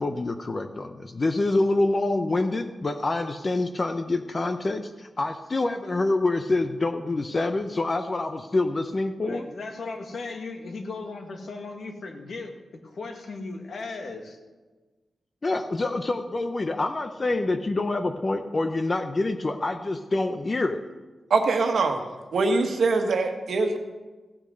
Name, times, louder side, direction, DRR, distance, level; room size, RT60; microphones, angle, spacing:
voice 1, 0.0-9.4 15.4-20.8, left 2 dB, 30° left, 7 dB, 0.6 m, -26 dB
voice 2, 9.2-14.4, left 3 dB, 60° left, 4 dB, 1.7 m, -37 dB
voice 3, 21.3-22.0 22.3-23.8, right 3 dB, 65° right, 5 dB, 1.5 m, -23 dB
15.5 x 8.7 x 6.4 m, 1.3 s
wide cardioid pair, 170°, 0 cm